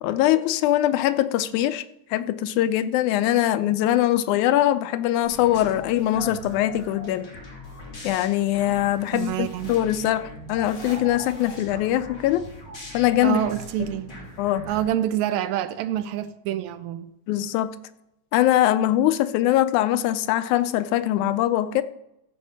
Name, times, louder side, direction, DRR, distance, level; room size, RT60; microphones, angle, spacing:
voice 1, 0.0-1.8 2.1-7.3 8.0-12.4 12.9-13.4 13.8-13.9 14.4-14.7 17.3-17.8 18.3-21.8, left 13 dB, 85° left, 2.0 m, -22 dB
sound 1, 5.2-14.8, left 1 dB, 35° left, 3.3 m, -40 dB
voice 2, 9.1-9.7 13.2-14.1 14.7-17.1, right 12 dB, 80° right, 1.8 m, -27 dB
14.0 x 5.3 x 6.1 m
omnidirectional pair, 3.5 m